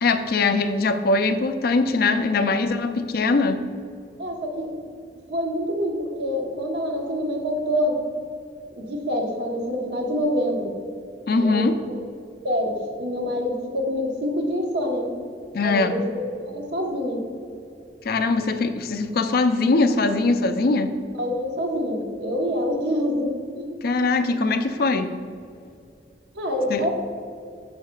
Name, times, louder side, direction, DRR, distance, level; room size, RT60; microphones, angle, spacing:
voice 1, 0.0-3.6 11.3-11.8 15.5-15.9 18.0-21.0 23.8-25.1 26.7-26.8, left 3 dB, 55° left, 8 dB, 0.4 m, -21 dB
voice 2, 4.2-4.7 5.3-8.0 8.8-10.7 11.4-12.0 12.4-15.1 15.6-17.2 21.2-23.7 26.3-26.9, equal, 65° right, 1 dB, 1.2 m, -26 dB
10.0 x 6.5 x 2.3 m, 2.4 s
head